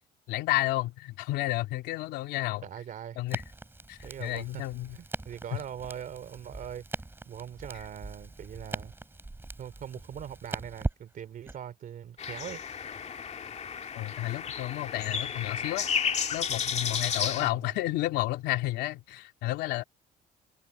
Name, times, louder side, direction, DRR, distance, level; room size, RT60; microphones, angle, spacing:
voice 1, 0.3-2.6 3.2-3.4 3.9-5.0 13.9-15.9 16.3-19.8, left 17 dB, 85° left, 3.3 m, -31 dB
voice 2, 2.6-3.2 4.0-4.6 4.9-6.8 7.2-8.9 9.6-12.6 17.3-17.8, right 9 dB, 55° right, 3.0 m, -41 dB
Crackle, 3.3-11.6, right 2 dB, 15° right, 5.5 m, -40 dB
sound 1, 12.2-17.5, left 7 dB, 40° left, 2.0 m, -32 dB
cardioid pair, 110°, 17 cm